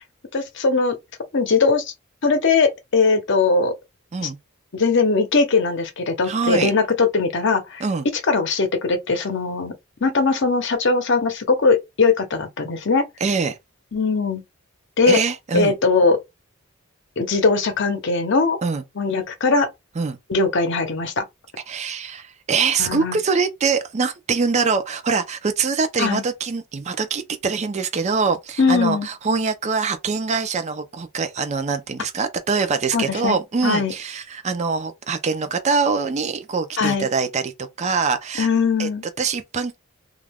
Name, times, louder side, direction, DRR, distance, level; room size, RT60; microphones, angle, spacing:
voice 1, 0.3-1.0 1.3-1.9 2.2-3.7 4.2-4.3 4.7-7.8 8.3-9.7 10.0-13.0 13.9-14.4 15.0-15.2 15.5-16.2 17.2-18.6 19.0-19.7 20.3-21.2 22.8-23.2 26.0-26.2 28.6-29.1 32.9-33.4 33.6-33.9 36.8-37.1 38.4-39.0, left 4 dB, 60° left, 0.7 m, -20 dB
voice 2, 6.2-6.7 7.8-8.1 13.2-13.6 15.1-15.7 18.6-18.8 20.0-20.2 21.7-38.5 38.8-38.9 39.2-39.8, right 5 dB, 35° right, 0.4 m, -23 dB
2.4 x 2.2 x 3.3 m
head